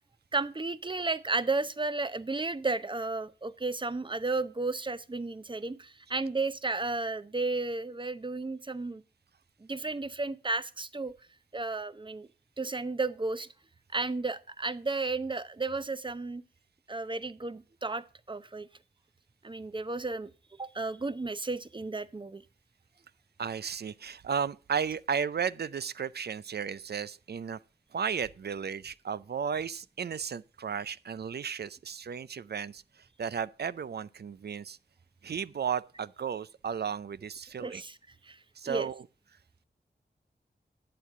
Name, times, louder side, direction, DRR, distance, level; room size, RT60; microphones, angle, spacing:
voice 1, 0.3-9.0 9.6-11.1 11.5-12.3 12.6-13.5 13.9-16.4 16.9-18.7 19.4-20.3 20.6-22.4 37.6-38.0 38.2-38.4 38.7-38.9, right 3 dB, 25° right, 0.7 m, -33 dB
voice 2, 23.4-27.6 27.9-32.8 33.2-34.8 35.2-37.8 38.6-39.0, right 7 dB, 65° right, 0.5 m, -34 dB
12.0 x 8.5 x 3.7 m
wide cardioid pair, 80°, 18 cm